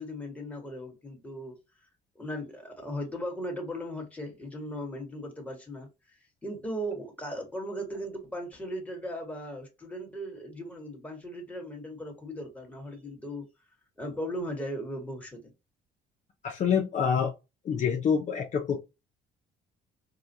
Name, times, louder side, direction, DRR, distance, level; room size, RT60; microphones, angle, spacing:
voice 1, 0.0-1.6 2.2-5.9 6.4-13.4 14.0-15.4, equal, 10° left, 1.5 m, -37 dB
voice 2, 16.4-17.3 17.6-18.8, left 7 dB, 45° left, 0.7 m, -26 dB
4.9 x 2.3 x 2.7 m
cardioid pair, 110°, 17 cm